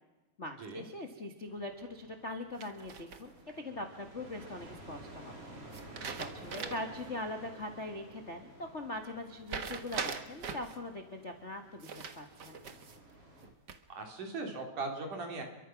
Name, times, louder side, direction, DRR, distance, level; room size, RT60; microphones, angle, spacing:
voice 1, 0.4-5.3 6.2-12.6, left 1 dB, 55° left, 4 dB, 0.7 m, -42 dB
sound 1, 1.5-13.5, right 1 dB, 40° right, 4.7 m, -53 dB
sound 2, 2.6-3.5 5.7-7.0 7.4-7.5 9.5-10.8 11.8-13.0 13.4-14.0, right 6 dB, 85° right, 0.9 m, -41 dB
voice 2, 13.9-15.4, right 3 dB, 55° right, 3 dB, 4.6 m, -39 dB
29.0 x 23.5 x 6.0 m, 1.2 s
omnidirectional pair, 4.4 m